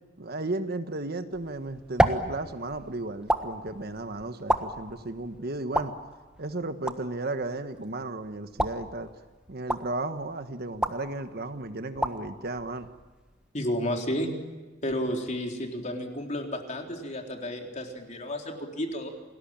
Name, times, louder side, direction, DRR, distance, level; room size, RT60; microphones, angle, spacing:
voice 1, 0.2-5.9 6.4-9.1 9.5-12.9, right 2 dB, 55° right, 9 dB, 1.4 m, -34 dB
sound 1, 1.3-13.5, right 1 dB, 5° right, 1.4 m, -33 dB
voice 2, 13.5-14.3 14.8-19.1, equal, 40° left, 2 dB, 3.9 m, -32 dB
28.5 x 20.0 x 8.9 m, 1.3 s
head